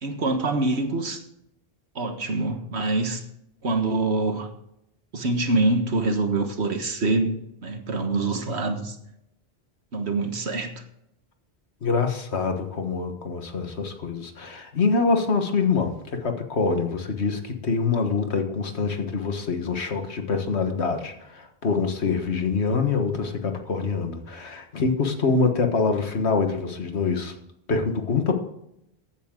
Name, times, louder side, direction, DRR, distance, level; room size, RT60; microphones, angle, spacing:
voice 1, 0.0-1.2 1.9-3.2 3.6-4.5 5.1-8.9 9.9-10.7, right 2 dB, 80° right, 6 dB, 1.7 m, -25 dB
voice 2, 11.8-27.3 27.7-28.4, left 4 dB, 80° left, 5 dB, 1.8 m, -25 dB
15.0 x 9.5 x 3.8 m, 0.79 s
omnidirectional pair, 1.1 m